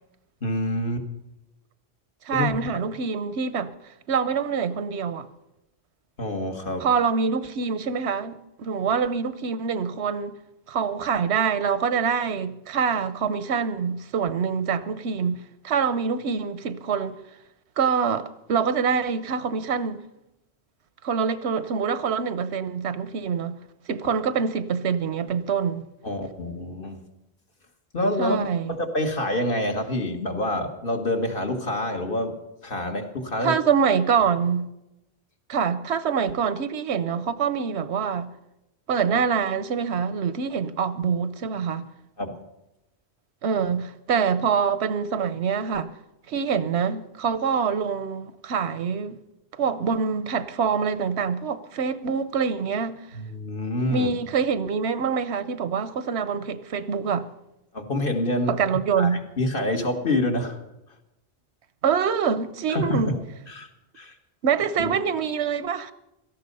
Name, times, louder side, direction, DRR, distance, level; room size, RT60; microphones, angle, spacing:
voice 1, 0.4-1.0 2.3-2.6 6.2-6.9 26.0-27.0 27.9-28.4 28.7-32.3 32.6-33.6 42.2-42.4 53.1-54.1 57.7-58.6 59.0-60.6 62.7-63.2 63.5-63.7 64.0-64.1 64.8-64.9, left 1 dB, 55° left, 1.9 m, -27 dB
voice 2, 2.2-5.3 6.8-10.4 10.7-17.2 17.8-20.0 21.0-23.6 23.9-25.8 28.2-28.7 33.4-34.7 35.5-38.3 38.9-41.9 43.4-45.9 46.3-49.2 49.6-53.0 53.9-57.3 58.5-59.2 61.8-63.1 64.4-65.9, right 6 dB, 90° right, 1.1 m, -25 dB
17.5 x 13.5 x 5.4 m
omnidirectional pair, 1.1 m